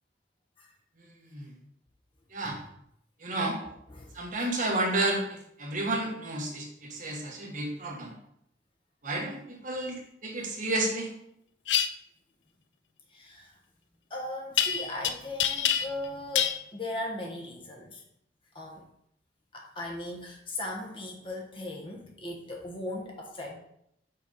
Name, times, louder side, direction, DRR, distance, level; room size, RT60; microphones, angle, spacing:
voice 1, 1.0-1.5 2.3-2.6 3.2-3.6 4.1-8.2 9.0-11.1, right 2 dB, 45° right, 0 dB, 1.4 m, -31 dB
voice 2, 3.6-4.1 13.1-13.5 14.1-18.0 18.5-18.9 19.5-23.6, left 1 dB, 30° left, 0 dB, 1.3 m, -38 dB
sound 1, 11.7-11.9 14.6-15.1 15.4-16.1 16.4-16.6, left 9 dB, 85° left, 0.5 m, -26 dB
5.9 x 4.5 x 5.3 m, 0.74 s
head